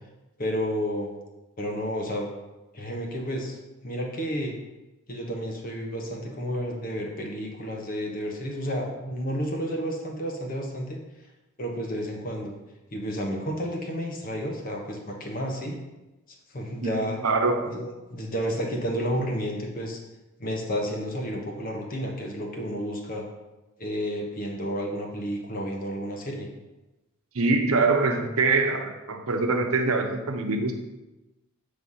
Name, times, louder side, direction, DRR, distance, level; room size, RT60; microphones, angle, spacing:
voice 1, 0.4-1.1 1.6-2.3 2.7-3.6 3.8-4.5 5.1-11.0 11.6-12.5 12.9-15.8 16.5-17.2 17.7-20.0 20.4-23.2 23.8-26.5, equal, 40° left, 1 dB, 1.1 m, -31 dB
voice 2, 17.2-17.7 27.3-30.7, right 3 dB, 80° right, 4 dB, 0.9 m, -24 dB
8.0 x 3.4 x 5.6 m, 1.1 s
head